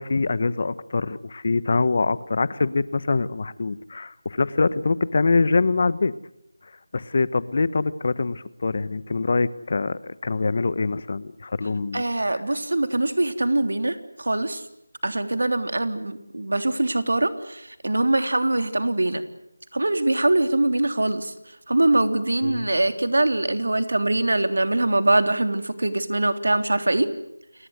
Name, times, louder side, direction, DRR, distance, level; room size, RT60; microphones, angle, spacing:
voice 1, 0.0-6.1 6.9-12.4 22.4-22.7, left 3 dB, 40° left, 18 dB, 1.1 m, -24 dB
voice 2, 11.9-14.6 15.0-19.2 19.7-21.3 21.7-27.1, right 2 dB, 70° right, 9 dB, 3.3 m, -23 dB
29.0 x 21.0 x 8.1 m, 0.83 s
figure-of-eight pair, 170°, 0 cm